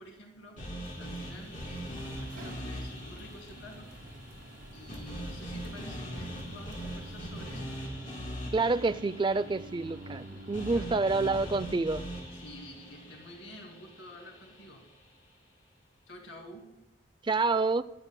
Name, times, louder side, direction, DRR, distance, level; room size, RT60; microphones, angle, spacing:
voice 1, 0.0-4.0 4.7-7.8 10.7-11.1 12.3-14.9 16.1-16.8, equal, 90° left, 2.4 m, -50 dB
sound 1, 0.6-14.7, equal, 45° left, 3.4 m, -42 dB
sound 2, 0.8-7.6, equal, 60° right, 4.0 m, -51 dB
sound 3, 1.6-11.9, right 1 dB, 80° right, 1.2 m, -49 dB
voice 2, 8.5-12.0 17.2-17.8, right 3 dB, 25° right, 0.4 m, -28 dB
23.5 x 12.0 x 2.2 m
head